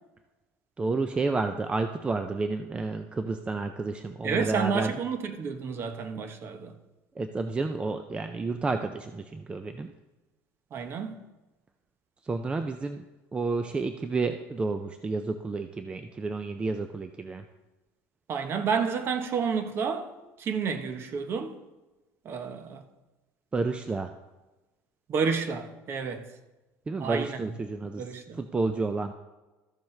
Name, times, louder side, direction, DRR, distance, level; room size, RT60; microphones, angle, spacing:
voice 1, 0.8-4.9 7.2-9.9 12.2-13.0 13.3-17.4 23.5-24.1 26.9-28.0 28.3-29.1, right 3 dB, 15° right, 0.4 m, -30 dB
voice 2, 4.2-6.7 10.7-11.2 18.3-20.1 20.4-21.5 22.2-22.8 25.1-26.3 27.0-27.4 28.0-28.4, right 5 dB, 40° right, 1.0 m, -30 dB
14.0 x 7.0 x 3.2 m
cardioid pair, 130°, 6 cm